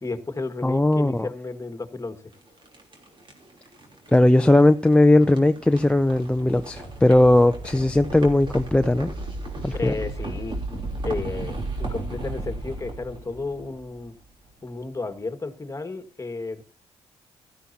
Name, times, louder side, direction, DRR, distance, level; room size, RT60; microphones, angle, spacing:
voice 1, 0.0-2.3 9.7-10.6 11.0-14.1 14.6-16.6, left 3 dB, 25° left, 8 dB, 1.8 m, -33 dB
voice 2, 0.6-1.3 4.1-9.1 9.6-9.9, left 1 dB, 10° left, 8 dB, 0.5 m, -18 dB
sound 1, 2.3-14.4, right 2 dB, 45° right, 3.3 m, -35 dB
16.0 x 13.0 x 2.8 m, 0.36 s
cardioid pair, 70°, 12 cm